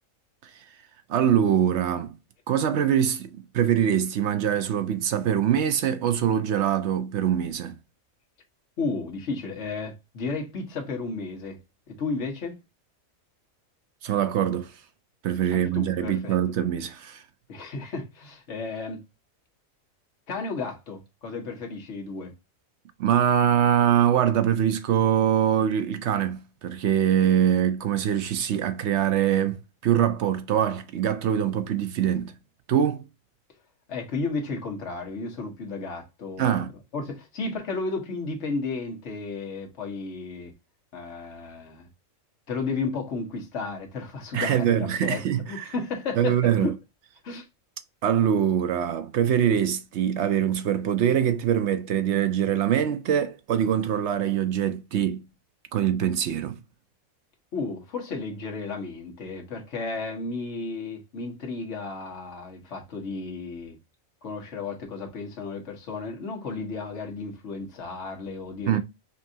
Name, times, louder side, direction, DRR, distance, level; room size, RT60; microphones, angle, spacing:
voice 1, 1.1-2.1 2.5-7.8 14.0-14.7 15.2-17.2 23.0-32.3 32.7-33.0 36.4-36.7 44.3-45.7 46.2-46.7 48.0-55.2 55.7-56.6 68.7-68.8, right 9 dB, 65° right, 0.8 m, -23 dB
voice 2, 8.8-11.6 11.9-12.6 15.5-16.4 17.5-19.0 20.3-22.3 33.9-36.5 36.9-40.5 40.9-41.9 42.5-46.8 47.2-47.5 57.5-63.8 64.2-68.8, left 3 dB, 60° left, 1.4 m, -33 dB
5.3 x 2.5 x 2.6 m
omnidirectional pair, 1.4 m